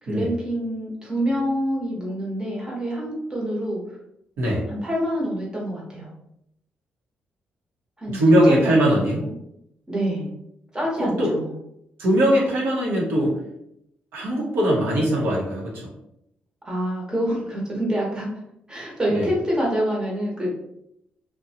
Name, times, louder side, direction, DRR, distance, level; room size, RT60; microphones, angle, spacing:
voice 1, 0.0-3.8 4.7-6.1 8.0-8.2 8.5-8.7 9.0-9.3 9.9-10.3 10.7-11.5 16.6-18.3 18.7-20.5, equal, 20° right, -4 dB, 1.0 m, -26 dB
voice 2, 8.1-9.2 11.0-11.3 12.0-13.3 14.1-15.7 19.1-19.3, right 1 dB, 85° right, -4 dB, 0.9 m, -20 dB
2.6 x 2.2 x 2.8 m, 0.79 s
cardioid pair, 100°, 4 cm